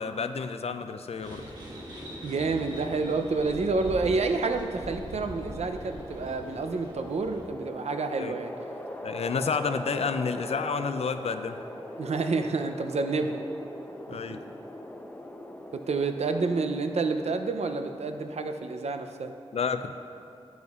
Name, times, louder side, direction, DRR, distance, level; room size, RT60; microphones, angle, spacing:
voice 1, 0.0-1.4 8.2-8.3 9.0-11.6 14.1-14.4 19.5-19.9, left 5 dB, 65° left, 9 dB, 0.4 m, -30 dB
sound 1, 1.2-7.5, equal, 35° right, 1.5 m, -41 dB
voice 2, 2.2-8.5 12.0-13.4 14.1-14.2 15.7-19.3, right 4 dB, 70° right, 6 dB, 0.5 m, -29 dB
sound 2, 2.3-18.7, left 1 dB, 15° left, 0.6 m, -43 dB
9.5 x 9.2 x 2.4 m, 2.6 s
wide cardioid pair, 90°, 11 cm